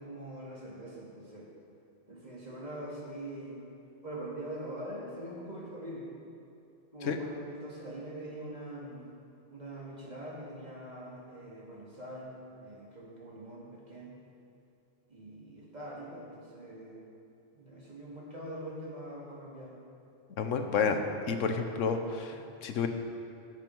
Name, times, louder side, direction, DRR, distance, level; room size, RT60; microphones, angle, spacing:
voice 1, 0.0-1.5 2.1-3.6 4.0-6.1 6.9-9.1 9.5-14.2 15.1-17.1 17.5-19.7 22.3-22.4, right 1 dB, 35° right, -4 dB, 2.1 m, -43 dB
voice 2, 20.4-21.0 21.3-22.9, left 5 dB, 85° left, 6 dB, 1.1 m, -30 dB
15.5 x 7.3 x 4.6 m, 2.6 s
omnidirectional pair, 1.3 m